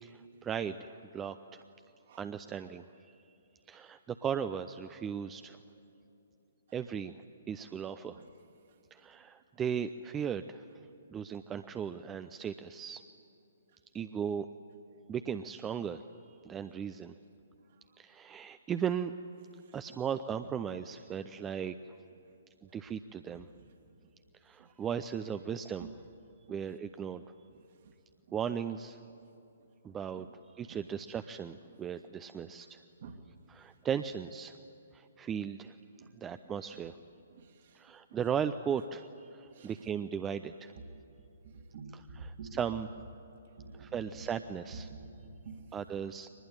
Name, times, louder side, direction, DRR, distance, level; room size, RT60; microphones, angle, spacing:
voice 1, 0.0-1.6 2.2-2.9 3.7-5.6 6.7-7.1 7.5-8.2 8.9-10.6 11.1-13.0 13.9-14.5 15.1-16.0 16.4-17.1 18.0-19.1 19.7-21.7 22.7-23.5 24.4-25.9 26.5-27.2 28.3-29.0 29.8-30.3 30.6-32.8 33.5-34.6 34.9-35.8 36.2-37.0 37.7-40.7 41.9-42.9 43.8-44.9 45.7-46.3, right 8 dB, 15° right, 10 dB, 0.5 m, -37 dB
voice 2, 29.9-30.3 30.7-30.8 31.7-31.8 33.0-33.2 36.0-36.1 36.7-36.8 37.3-37.8 39.5-39.7 40.8-40.9 41.5-42.6 43.6-44.3 44.7-45.7, right 4 dB, 45° right, 5 dB, 2.0 m, -48 dB
22.5 x 20.5 x 9.6 m, 2.8 s
figure-of-eight pair, 125°, 0 cm